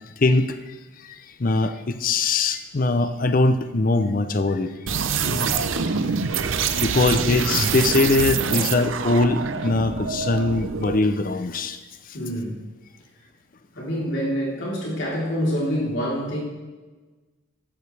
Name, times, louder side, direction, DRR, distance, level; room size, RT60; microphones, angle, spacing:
voice 1, 0.2-4.7 5.5-5.6 6.8-11.8, left 3 dB, 40° left, 10 dB, 0.5 m, -22 dB
sound 1, 4.9-11.0, right 6 dB, 70° right, 0.7 m, -25 dB
voice 2, 5.2-5.5 6.9-7.4 8.5-8.7 12.1-12.6 13.7-16.4, equal, 60° left, -5 dB, 3.5 m, -27 dB
14.5 x 12.5 x 3.3 m, 1.3 s
head